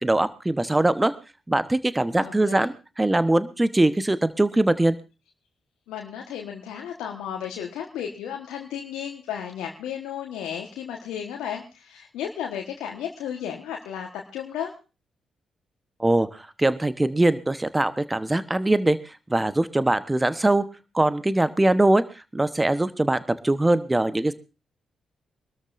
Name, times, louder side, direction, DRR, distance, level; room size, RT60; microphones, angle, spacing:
voice 1, 0.0-1.1 1.5-5.0 16.0-19.0 19.3-20.7 20.9-22.0 22.3-24.3, right 2 dB, 20° right, 13 dB, 1.1 m, -22 dB
voice 2, 2.1-2.7 5.9-14.7, left 9 dB, 80° left, 1 dB, 1.4 m, -34 dB
25.0 x 13.0 x 2.6 m, 0.31 s
hypercardioid pair, 40°, 0 cm